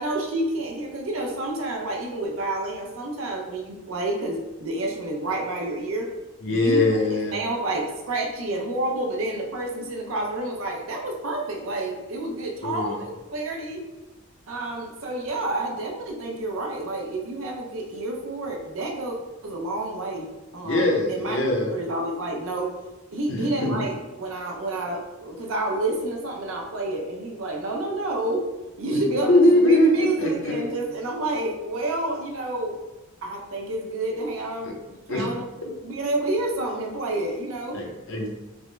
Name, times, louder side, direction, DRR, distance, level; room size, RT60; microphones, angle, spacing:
voice 1, 0.0-6.1 6.5-6.8 7.3-13.8 14.5-19.2 19.4-20.3 20.5-21.4 21.7-22.7 23.1-28.4 28.8-32.8 33.2-35.4 35.8-37.8, right 2 dB, 85° right, 1 dB, 0.6 m, -29 dB
voice 2, 6.4-7.4 12.6-13.0 20.6-21.7 23.3-23.8 28.9-30.7 34.6-34.7 35.1-35.3 37.7-38.3, left 1 dB, 70° left, 0 dB, 0.7 m, -22 dB
3.4 x 2.1 x 3.2 m, 1.0 s
head